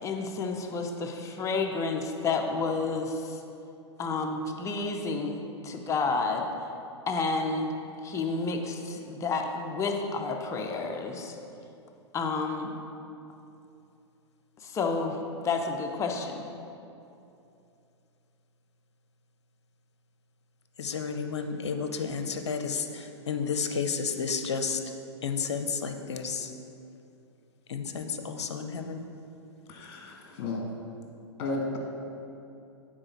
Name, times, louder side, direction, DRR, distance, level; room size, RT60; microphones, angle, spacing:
voice 1, 0.0-3.4 4.0-6.5 7.1-7.7 8.0-11.4 12.1-12.7 14.6-16.5, left 4 dB, 20° left, 3 dB, 0.6 m, -30 dB
voice 2, 20.8-24.8 25.2-26.5 27.7-29.0, left 5 dB, 70° left, 6 dB, 0.6 m, -32 dB
voice 3, 29.7-30.6 31.4-31.8, left 3 dB, 45° left, 1 dB, 1.4 m, -33 dB
8.7 x 4.2 x 4.4 m, 2.7 s
figure-of-eight pair, 105°, 15 cm